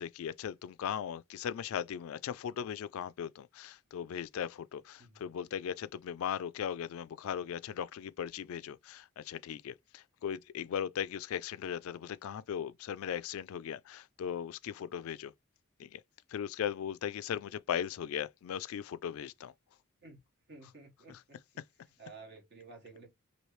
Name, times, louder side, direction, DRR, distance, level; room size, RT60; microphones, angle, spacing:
voice 1, 0.0-15.3 15.8-16.0 16.3-19.5 21.1-21.2, left 8 dB, 70° left, 0.3 m, -38 dB
voice 2, 20.5-21.4 22.0-23.1, right 3 dB, 55° right, 1.3 m, -52 dB
3.1 x 2.7 x 3.1 m
head